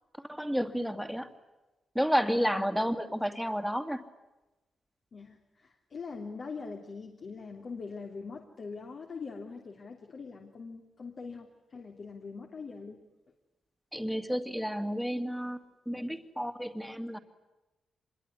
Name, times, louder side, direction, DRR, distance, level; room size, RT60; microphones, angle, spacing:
voice 1, 0.2-1.3 1.9-4.0 13.9-15.6 15.9-17.2, equal, ahead, 9 dB, 2.3 m, -31 dB
voice 2, 2.3-2.7 5.1-13.0, left 4 dB, 55° left, 2 dB, 3.2 m, -43 dB
26.0 x 22.0 x 9.8 m, 1.1 s
cardioid pair, 95°, 0 cm